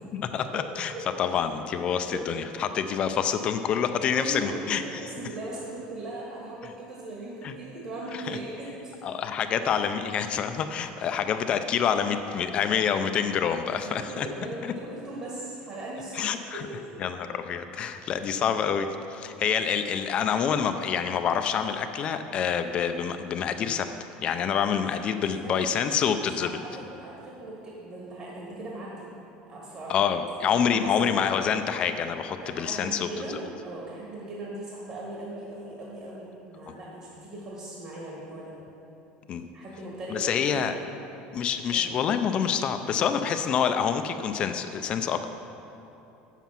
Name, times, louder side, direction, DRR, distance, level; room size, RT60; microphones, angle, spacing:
voice 1, 0.1-0.9 1.2-4.8 7.4-7.5 8.1-8.4 9.0-14.3 14.6-14.7 16.1-16.7 17.0-23.9 24.2-26.6 29.9-33.1 36.7-36.8 39.3-39.5 40.1-40.7 41.3-45.3, left 7 dB, 30° left, 8 dB, 0.4 m, -27 dB
voice 2, 4.1-4.6 4.8-8.9 9.6-9.7 12.6-12.7 13.5-16.3 16.5-16.9 24.6-24.7 25.4-25.7 26.4-29.1 29.5-29.9 30.4-31.2 32.4-38.5 39.5-40.7 41.7-41.9, right 1 dB, 40° right, -5 dB, 1.6 m, -39 dB
8.0 x 7.4 x 5.8 m, 2.9 s
cardioid pair, 170°, 3 cm